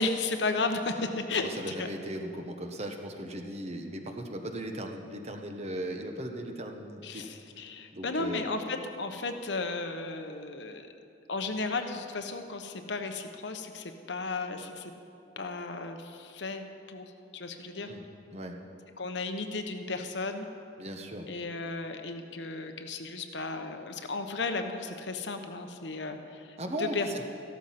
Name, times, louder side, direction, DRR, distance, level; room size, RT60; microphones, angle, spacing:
voice 1, 0.0-1.5 1.8-1.9 7.0-10.9 11.3-14.9 15.4-17.0 17.3-17.9 19.0-20.5 21.3-27.2, left 3 dB, 70° left, 6 dB, 1.0 m, -34 dB
voice 2, 1.4-7.2 7.9-8.4 17.8-18.0 18.3-18.6 20.8-21.3 26.6-27.2, right 1 dB, 35° right, 4 dB, 1.2 m, -37 dB
14.5 x 13.0 x 5.9 m, 2.6 s
head